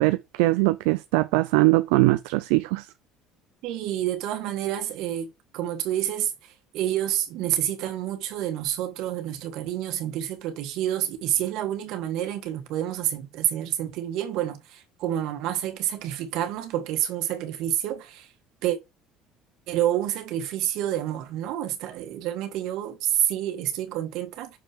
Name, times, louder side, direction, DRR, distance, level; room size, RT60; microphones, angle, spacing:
voice 1, 0.0-2.9, right 21 dB, 90° right, 0.4 m, -21 dB
voice 2, 3.6-6.3 6.7-18.3 18.6-18.8 19.7-24.5, right 12 dB, 70° right, 1.6 m, -28 dB
6.6 x 5.3 x 3.4 m
cardioid pair, 110°, 0 cm